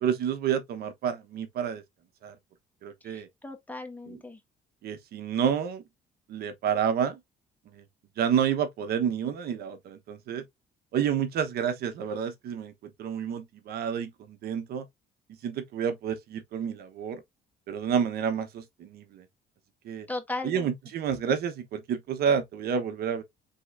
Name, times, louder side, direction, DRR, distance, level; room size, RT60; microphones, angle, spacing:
voice 1, 0.0-1.8 2.2-2.3 2.8-3.3 4.1-4.2 4.8-5.8 6.3-7.2 8.2-10.4 10.9-12.7 13.0-14.8 15.4-17.2 17.7-19.2 19.8-20.1 20.4-23.2, right 8 dB, 65° right, 1.0 m, -29 dB
voice 2, 3.0-4.4 20.1-20.7, left 2 dB, 10° left, 1.2 m, -37 dB
5.3 x 3.6 x 2.5 m
cardioid pair, 110°, 17 cm